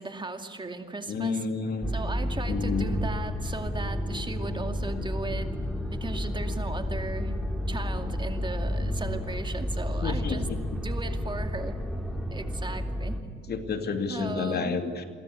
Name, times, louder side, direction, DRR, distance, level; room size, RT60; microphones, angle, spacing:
voice 1, 0.0-1.5 1.9-5.6 5.9-7.4 7.7-10.5 10.7-11.8 12.3-13.2 14.1-14.8, right 3 dB, 25° right, 6 dB, 2.4 m, -37 dB
voice 2, 1.1-2.0 2.5-2.9 10.0-10.6 13.5-15.0, left 4 dB, 55° left, 6 dB, 2.6 m, -30 dB
sound 1, 1.8-13.2, left 1 dB, ahead, 3.1 m, -31 dB
27.5 x 22.5 x 8.6 m, 2.2 s
cardioid pair, 90°, 20 cm